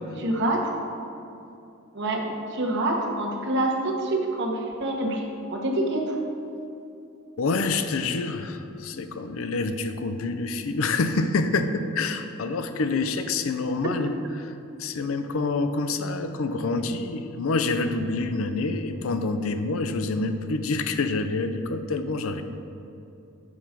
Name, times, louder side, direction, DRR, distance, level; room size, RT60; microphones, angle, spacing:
voice 1, 0.2-0.6 1.9-5.2 5.5-6.2, right 1 dB, 55° right, 0 dB, 1.0 m, -26 dB
voice 2, 7.4-14.5 14.8-22.4, left 3 dB, 70° left, 9 dB, 0.5 m, -27 dB
7.1 x 4.6 x 5.7 m, 2.7 s
head